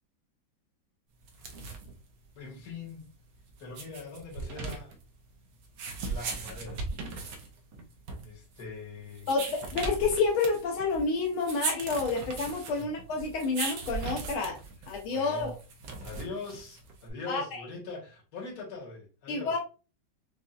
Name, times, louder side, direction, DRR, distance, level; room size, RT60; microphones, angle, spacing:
sound 1, 1.2-17.1, right 4 dB, 65° right, 1.2 m, -39 dB
voice 1, 2.3-3.1 3.6-4.9 6.0-6.8 8.2-9.3 12.8-12.9 15.1-15.5 16.0-19.6, left 3 dB, 45° left, 1.7 m, -42 dB
voice 2, 9.3-14.6 14.9-15.5 17.3-17.4 19.3-19.6, left 4 dB, 90° left, 1.8 m, -29 dB
5.5 x 2.4 x 2.4 m
omnidirectional pair, 2.2 m